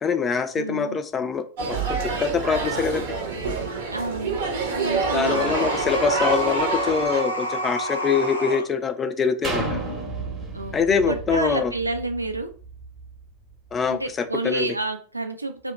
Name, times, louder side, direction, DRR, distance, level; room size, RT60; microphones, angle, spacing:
voice 1, 0.0-3.1 5.1-9.8 10.7-11.7 13.7-14.7, left 5 dB, 20° left, 9 dB, 0.4 m, -24 dB
voice 2, 0.6-1.0 3.9-4.4 4.7-5.8 6.5-6.6 10.5-10.8 11.1-12.5 13.9-15.7, right 2 dB, 85° right, 5 dB, 0.4 m, -29 dB
sound 1, 1.6-7.2, right 4 dB, 55° right, 0.7 m, -27 dB
sound 2, 5.2-8.7, equal, 90° left, 0.6 m, -29 dB
sound 3, 9.4-13.2 13.7-13.8, right 2 dB, 25° right, 0.8 m, -32 dB
2.8 x 2.1 x 3.7 m, 0.40 s
figure-of-eight pair, 90°, 0 cm